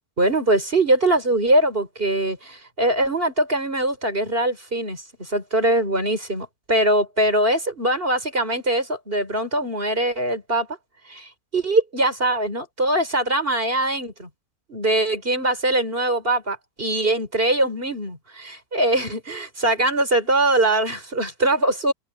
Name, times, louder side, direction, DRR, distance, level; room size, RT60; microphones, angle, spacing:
voice 1, 0.2-10.7 11.1-14.3 14.7-21.9, right 1 dB, 30° right, 4.4 m, -22 dB
omnidirectional pair, 1.9 m